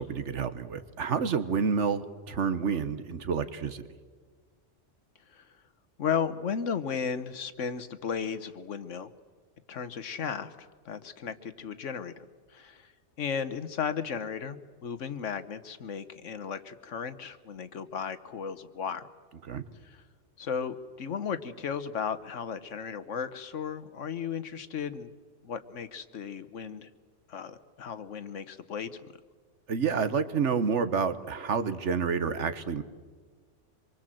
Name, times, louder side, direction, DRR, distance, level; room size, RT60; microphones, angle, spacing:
voice 1, 0.0-3.8 19.5-19.6 29.7-32.8, right 6 dB, 75° right, 11 dB, 1.5 m, -29 dB
voice 2, 6.0-9.1 9.7-12.2 12.5-12.9 13.2-19.1 19.8-20.0 20.4-25.1 25.4-26.9 27.3-29.1, left 7 dB, 85° left, 12 dB, 1.4 m, -35 dB
25.5 x 23.5 x 7.7 m, 1.5 s
omnidirectional pair, 1.2 m